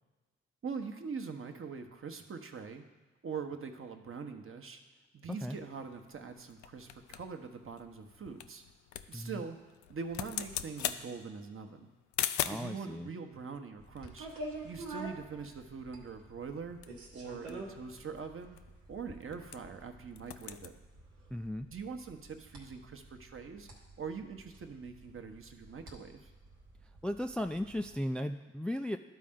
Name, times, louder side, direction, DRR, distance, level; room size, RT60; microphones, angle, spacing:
voice 1, 0.6-2.8 3.2-4.8 5.1-8.6 9.1-9.6 9.9-11.9 12.5-14.3 14.6-16.8 17.1-18.6 18.9-20.7 21.7-23.7 24.0-26.3, right 5 dB, 45° right, 6 dB, 1.0 m, -43 dB
sound 1, 5.3-12.8 13.5-15.2 15.4-15.5 15.8-16.1 16.5-19.8 20.1-20.7, left 11 dB, 75° left, 0.4 m, -41 dB
voice 2, 12.4-13.1 21.3-21.7 27.0-29.0, left 1 dB, 5° left, 7 dB, 0.3 m, -36 dB
sound 2, 13.8-28.0, right 2 dB, 85° right, 1.1 m, -49 dB
12.0 x 4.2 x 3.7 m, 1.3 s
hypercardioid pair, 40°, 30 cm